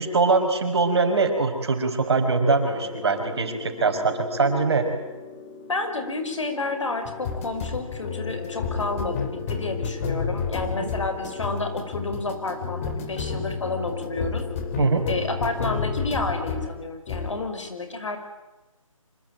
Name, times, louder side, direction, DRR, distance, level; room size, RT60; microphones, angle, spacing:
voice 1, 0.0-4.9 10.8-10.9 14.8-15.0, right 4 dB, 50° right, 6 dB, 5.2 m, -22 dB
sound 1, 2.5-16.7 17.1-17.4, left 5 dB, 25° left, 3.0 m, -32 dB
voice 2, 5.7-14.4 15.1-18.2, left 2 dB, 65° left, 6 dB, 5.6 m, -30 dB
26.0 x 24.0 x 9.1 m, 1.1 s
figure-of-eight pair, 155°, 17 cm